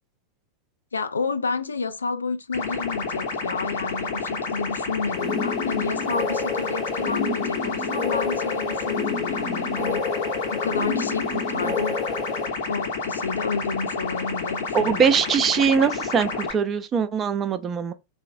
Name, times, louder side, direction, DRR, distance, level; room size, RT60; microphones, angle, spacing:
voice 1, 0.9-10.0 10.5-12.0 12.7-15.0, left 4 dB, 75° left, 0.3 m, -30 dB
sound 1, 2.5-16.5, left 4 dB, 55° left, 0.9 m, -30 dB
sound 2, 5.1-12.5, left 4 dB, 25° left, 0.9 m, -29 dB
voice 2, 14.7-17.9, right 6 dB, 25° right, 0.4 m, -22 dB
3.7 x 2.1 x 2.5 m
figure-of-eight pair, 90°, 0 cm